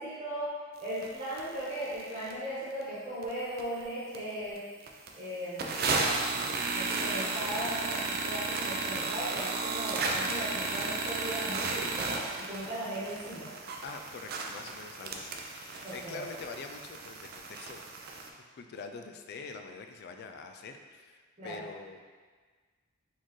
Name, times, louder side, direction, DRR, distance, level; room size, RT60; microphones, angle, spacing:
voice 1, 0.0-4.6 5.1-6.0 6.7-13.5 15.8-16.3 21.4-21.7, right 1 dB, 30° right, -10 dB, 1.2 m, -38 dB
sound 1, 1.0-1.1 1.4-1.5 1.9-2.3 2.8-2.9 3.2-3.8 4.1-4.2 4.6-4.7 4.9-5.1 5.6-18.3, right 3 dB, 45° right, 0.4 m, -34 dB
voice 2, 13.8-17.8 18.5-22.0, left 4 dB, 50° left, 5 dB, 0.3 m, -45 dB
4.2 x 3.8 x 3.1 m, 1.5 s
head